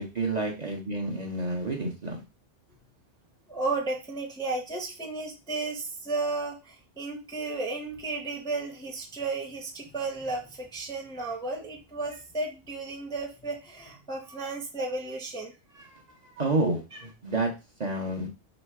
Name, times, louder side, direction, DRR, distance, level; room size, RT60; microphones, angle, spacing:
voice 1, 0.0-2.2 15.7-16.0 16.4-17.5 17.8-18.3, right 2 dB, 40° right, 1 dB, 0.8 m, -29 dB
voice 2, 3.5-15.5, right 3 dB, 5° left, 1 dB, 0.7 m, -33 dB
3.2 x 3.1 x 4.5 m, 0.28 s
omnidirectional pair, 1.2 m